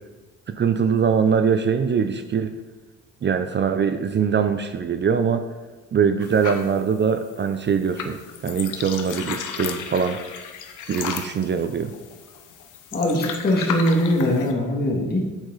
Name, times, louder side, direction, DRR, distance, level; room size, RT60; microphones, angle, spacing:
voice 1, 0.5-2.5 3.2-5.4 5.9-8.2 8.4-10.2 10.9-11.9, right 6 dB, 35° right, 9 dB, 0.5 m, -22 dB
sound 1, 6.2-14.5, left 7 dB, 85° left, 0.9 m, -34 dB
voice 2, 12.9-15.2, left 1 dB, 30° left, -1 dB, 2.3 m, -21 dB
8.1 x 8.1 x 4.1 m, 1.2 s
cardioid pair, 90°, 30 cm